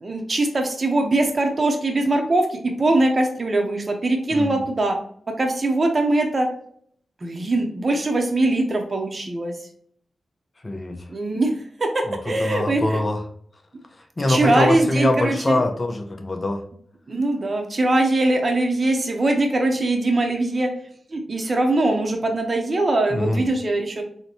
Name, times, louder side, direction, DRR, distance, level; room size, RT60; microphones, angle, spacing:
voice 1, 0.0-4.9 5.4-6.5 7.2-9.5 11.1-11.5 11.8-13.0 14.3-15.6 17.1-20.7 21.1-24.0, right 2 dB, 40° right, 3 dB, 0.6 m, -21 dB
voice 2, 4.3-4.6 10.6-11.1 12.1-13.2 13.9-16.6 23.1-23.4, left 2 dB, 30° left, 3 dB, 0.5 m, -24 dB
4.0 x 2.1 x 2.9 m, 0.62 s
cardioid pair, 70°, 0 cm